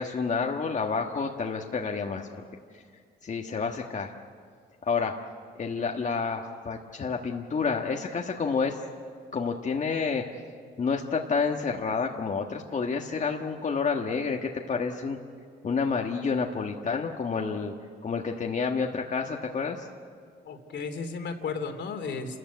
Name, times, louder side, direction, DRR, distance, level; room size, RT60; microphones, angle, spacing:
voice 1, 0.0-2.3 2.7-2.8 3.2-4.1 4.8-5.1 5.5-8.8 9.3-10.2 10.8-15.2 15.6-17.7 18.0-19.9, left 5 dB, 40° left, 1 dB, 1.5 m, -29 dB
voice 2, 20.4-22.4, left 4 dB, 65° left, 6 dB, 2.7 m, -34 dB
29.5 x 14.5 x 9.3 m, 2.1 s
cardioid pair, 90°, 20 cm